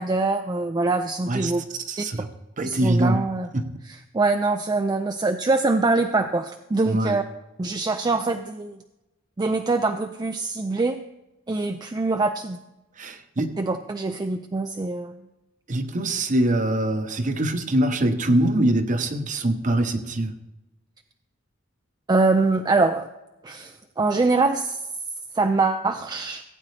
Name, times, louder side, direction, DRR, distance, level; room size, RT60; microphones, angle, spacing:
voice 1, 0.0-1.6 2.6-3.5 3.9-7.2 7.6-8.8 9.4-11.0 11.5-12.6 13.6-15.1 22.1-23.1 23.4-24.8 25.3-26.4, right 3 dB, 20° right, 7 dB, 0.3 m, -24 dB
voice 2, 1.9-2.3 2.6-3.2 3.5-3.6 6.9-7.2 13.0-13.5 15.7-20.3, right 1 dB, 35° right, 9 dB, 0.8 m, -23 dB
16.0 x 8.6 x 3.3 m, 0.99 s
head